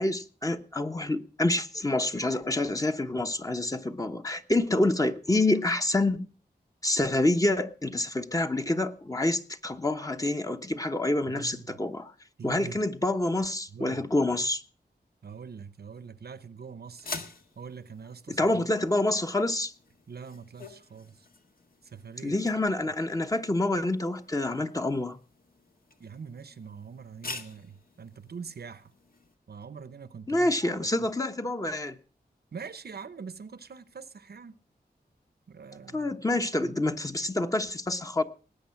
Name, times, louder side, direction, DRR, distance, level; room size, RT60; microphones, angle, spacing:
voice 1, 0.0-6.3 6.8-12.1 12.4-14.6 18.3-19.7 22.2-25.2 30.3-32.0 35.9-38.2, left 2 dB, 20° left, 1.1 m, -27 dB
voice 2, 11.3-11.8 12.4-12.8 13.7-14.0 15.2-17.2 17.6-18.7 20.1-21.3 21.8-22.6 26.0-28.9 29.5-30.6 32.5-34.6 35.5-36.2 36.6-36.8, right 6 dB, 70° right, 0.9 m, -44 dB
sound 1, 16.9-29.3, left 3 dB, 60° left, 1.7 m, -47 dB
19.0 x 8.6 x 5.9 m
wide cardioid pair, 70°, 17 cm